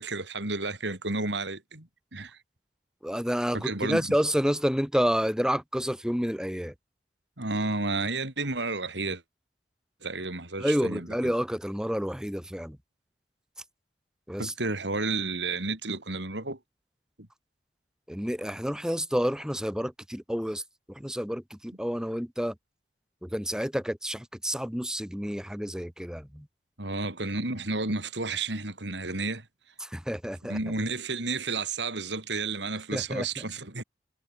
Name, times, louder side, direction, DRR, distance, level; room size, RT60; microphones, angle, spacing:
voice 1, 0.0-2.4 3.5-4.1 7.4-9.2 10.0-11.3 14.4-16.6 26.8-29.5 30.5-33.8, right 3 dB, 75° right, 4.3 m, -31 dB
voice 2, 3.0-6.7 10.6-12.8 14.3-14.5 18.1-20.6 20.9-22.5 23.2-26.5 29.8-30.6 32.9-33.3, equal, 5° right, 3.2 m, -29 dB
head